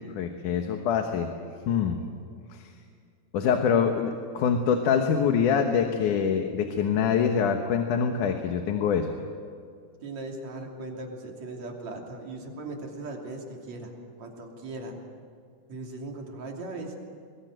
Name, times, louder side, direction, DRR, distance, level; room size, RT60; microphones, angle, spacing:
voice 1, 0.0-1.3 1.7-2.0 2.5-2.7 3.3-9.1, left 7 dB, 85° left, 5 dB, 2.8 m, -25 dB
voice 2, 10.0-15.0 15.7-17.0, right 2 dB, 60° right, 1 dB, 4.2 m, -38 dB
22.5 x 22.0 x 9.0 m, 2.2 s
omnidirectional pair, 3.5 m